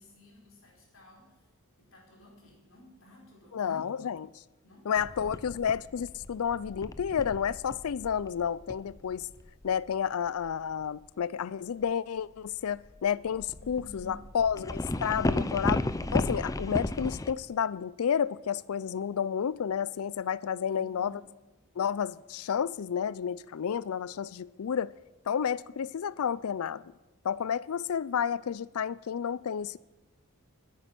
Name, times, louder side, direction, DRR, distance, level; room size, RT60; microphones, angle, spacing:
voice 1, 0.0-1.5 1.8-4.0 4.6-5.4 13.6-14.3 20.7-21.3, left 1 dB, 65° left, 4.6 m, -54 dB
voice 2, 3.5-4.3 4.9-9.3 9.6-15.8 16.1-21.1 21.8-24.9 25.3-26.8 27.2-29.8, left 7 dB, 85° left, 0.4 m, -31 dB
sound 1, 5.0-9.9 10.4-10.6 12.8-17.3, left 1 dB, 15° left, 0.5 m, -34 dB
20.0 x 9.6 x 6.0 m
head